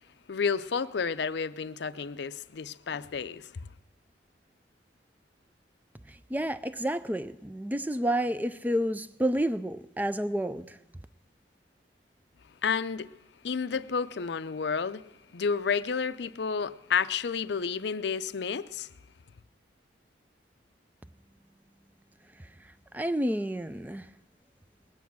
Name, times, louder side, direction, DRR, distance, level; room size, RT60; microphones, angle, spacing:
voice 1, 0.3-3.5 12.6-13.1 13.4-15.0 15.3-18.9, left 6 dB, 75° left, 0.5 m, -30 dB
voice 2, 6.1-10.8 22.4-22.5 22.9-24.1, right 1 dB, 10° right, 0.4 m, -30 dB
20.5 x 9.5 x 6.1 m
head